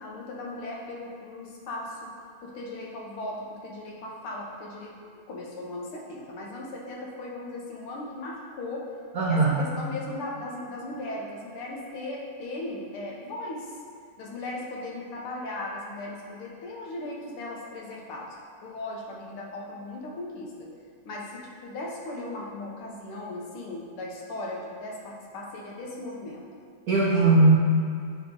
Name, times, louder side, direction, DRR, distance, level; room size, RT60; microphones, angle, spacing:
voice 1, 0.0-2.1 2.4-8.9 9.3-13.7 14.2-18.3 18.6-20.7 21.1-26.5, left 2 dB, 80° left, -3 dB, 1.8 m, -37 dB
voice 2, 9.2-9.7 26.9-27.5, right 2 dB, 65° right, -6 dB, 0.9 m, -20 dB
8.4 x 3.1 x 3.7 m, 2.4 s
omnidirectional pair, 2.4 m